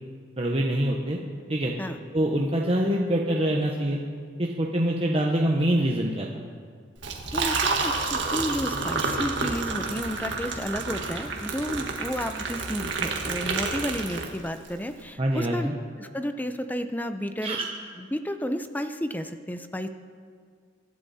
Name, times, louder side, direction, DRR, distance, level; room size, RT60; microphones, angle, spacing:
voice 1, 0.4-1.2 1.5-1.7 2.1-4.0 4.4-6.4 15.2-15.7 17.4-17.6, right 1 dB, 30° right, -1 dB, 1.1 m, -25 dB
Liquid, 7.0-14.7, right 4 dB, 70° right, 1.8 m, -29 dB
voice 2, 7.3-15.7 16.0-17.6 18.0-19.9, equal, 10° left, 8 dB, 0.7 m, -32 dB
24.5 x 11.5 x 4.3 m, 2.1 s
head